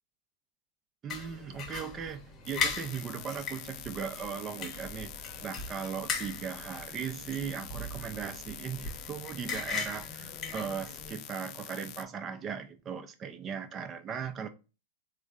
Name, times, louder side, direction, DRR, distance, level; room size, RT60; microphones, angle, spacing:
voice 1, 1.0-14.5, right 7 dB, 25° right, 0.5 m, -38 dB
sound 1, 1.1-11.1, left 4 dB, 30° left, 0.9 m, -39 dB
sound 2, 2.4-12.0, left 12 dB, 50° left, 0.3 m, -46 dB
3.3 x 2.0 x 3.6 m
hypercardioid pair, 120°, 0 cm